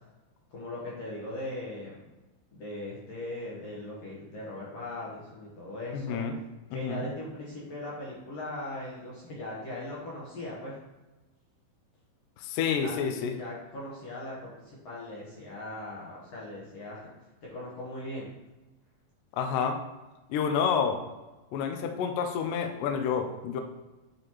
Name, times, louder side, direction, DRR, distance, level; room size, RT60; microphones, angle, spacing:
voice 1, 0.5-1.9 2.5-6.2 6.7-10.8 12.8-17.1 17.4-18.3, left 1 dB, 65° left, -6 dB, 1.7 m, -39 dB
voice 2, 5.9-6.4 6.7-7.1 12.4-13.4 19.4-19.8 20.3-21.0 21.5-23.6, left 6 dB, 80° left, 5 dB, 2.0 m, -29 dB
7.7 x 4.1 x 2.9 m, 1.1 s
omnidirectional pair, 4.2 m